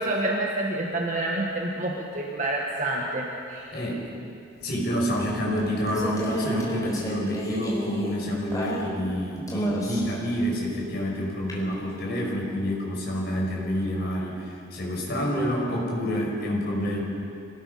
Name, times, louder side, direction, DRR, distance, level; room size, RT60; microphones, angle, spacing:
voice 1, 0.0-3.7, right 2 dB, 40° right, -1 dB, 1.6 m, -28 dB
voice 2, 3.7-4.1 4.6-17.0, equal, 55° left, -3 dB, 5.7 m, -28 dB
sound 1, 5.2-9.1 9.5-10.2 11.5-11.6, equal, 20° left, 4.1 m, -31 dB
26.0 x 18.5 x 5.7 m, 2.5 s
head